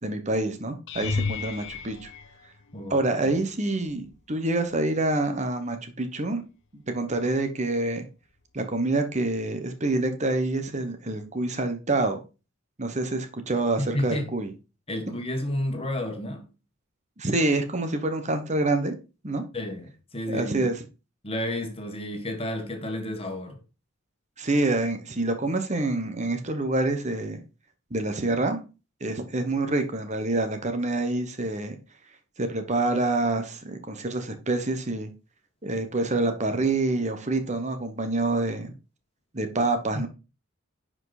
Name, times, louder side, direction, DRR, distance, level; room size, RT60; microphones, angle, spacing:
voice 1, 0.0-2.1 2.9-6.4 6.7-8.0 8.5-12.2 12.8-14.5 15.1-15.2 17.2-18.9 19.2-19.4 20.3-20.8 24.4-27.4 27.9-28.6 29.0-31.8 32.4-35.1 35.6-38.7 39.3-40.1, right 2 dB, 35° right, 1.3 m, -27 dB
sound 1, 0.9-3.1 3.8-4.3 4.6-4.8 9.1-9.2, left 4 dB, 65° left, 0.8 m, -33 dB
voice 2, 2.7-3.3 13.8-14.3 14.9-16.5 19.5-20.7 21.2-23.6 39.9-40.1, left 1 dB, 30° left, 1.6 m, -31 dB
10.5 x 5.0 x 4.1 m
head